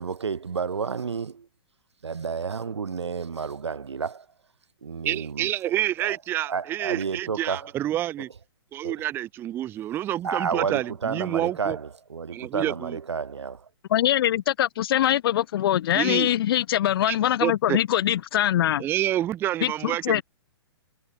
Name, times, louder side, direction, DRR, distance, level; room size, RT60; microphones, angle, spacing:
voice 1, 0.0-1.5 2.0-4.2 4.8-5.5 6.0-6.2 6.5-7.7 8.8-9.0 10.2-13.7, right 6 dB, 90° right, 1.2 m, -31 dB
voice 2, 5.0-8.3 8.7-11.8 12.3-13.0 15.9-16.3 17.1-17.8 18.8-20.2, right 13 dB, 15° right, 0.4 m, -28 dB
voice 3, 13.9-18.9 19.6-20.2, left 12 dB, 60° left, 0.4 m, -23 dB
hypercardioid pair, 130°, 14 cm